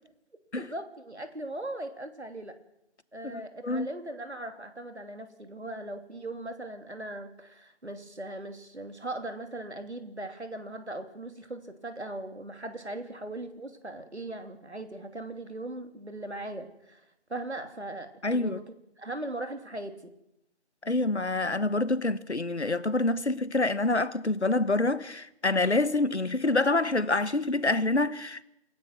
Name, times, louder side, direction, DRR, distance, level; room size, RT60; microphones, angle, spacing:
voice 1, 0.6-2.5 3.1-17.0 17.3-20.1, right 1 dB, 70° right, 3.0 m, -39 dB
voice 2, 3.2-3.9 18.2-18.6 20.8-28.4, left 2 dB, 70° left, 1.3 m, -27 dB
28.5 x 16.5 x 6.2 m
figure-of-eight pair, 175°, 35 cm